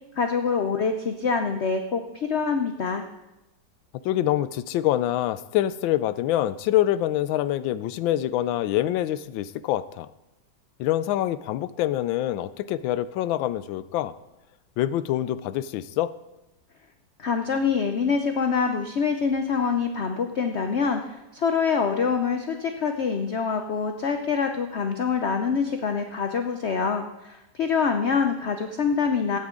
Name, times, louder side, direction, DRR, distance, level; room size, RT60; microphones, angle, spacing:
voice 1, 0.2-3.0 17.2-29.4, left 5 dB, 65° left, 6 dB, 0.6 m, -25 dB
voice 2, 4.0-10.1 10.8-14.1 14.8-16.1, left 13 dB, 85° left, 15 dB, 1.3 m, -25 dB
16.5 x 9.4 x 3.8 m, 0.96 s
omnidirectional pair, 2.1 m